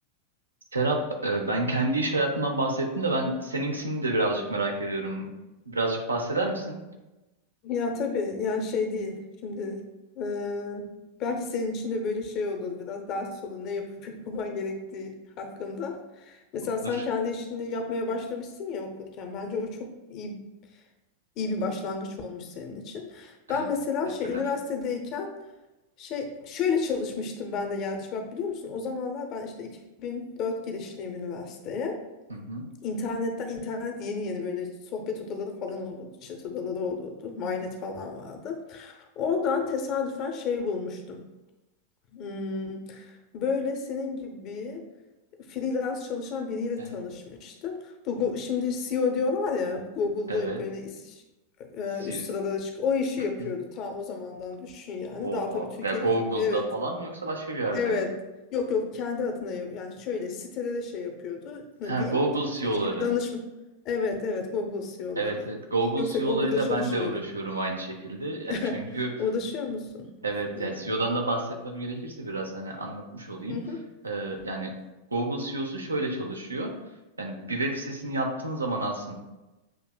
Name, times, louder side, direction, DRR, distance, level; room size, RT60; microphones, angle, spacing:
voice 1, 0.7-5.3 5.7-6.8 16.8-17.0 23.5-23.7 24.2-24.4 32.3-32.6 46.8-46.9 50.3-50.6 52.0-52.2 53.4-53.5 55.2-58.0 61.8-63.1 65.2-69.1 70.2-73.6 74.0-74.7 75.1-76.7 77.2-79.1, right 2 dB, 80° right, 1 dB, 0.7 m, -29 dB
voice 2, 7.6-9.8 10.1-10.9 11.2-20.4 21.4-25.3 26.0-32.0 32.8-41.3 42.1-44.8 45.4-51.2 51.6-56.6 57.7-58.1 58.5-62.2 62.7-63.4 63.8-65.5 66.0-67.2 68.5-68.9 69.2-70.1 70.6-70.8 73.5-73.8, left 4 dB, 40° left, 4 dB, 0.7 m, -31 dB
7.7 x 2.8 x 2.3 m, 1.0 s
figure-of-eight pair, 90°, 0 cm